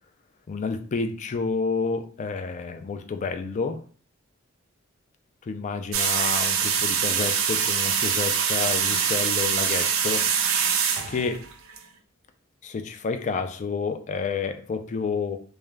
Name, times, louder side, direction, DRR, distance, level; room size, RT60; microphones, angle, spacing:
voice 1, 0.5-3.8 5.4-10.3 11.1-11.5 12.6-15.4, left 4 dB, 35° left, 7 dB, 0.3 m, -29 dB
sound 1, 5.9-11.8, right 7 dB, 80° right, 0.4 m, -24 dB
2.3 x 2.1 x 3.1 m, 0.43 s
head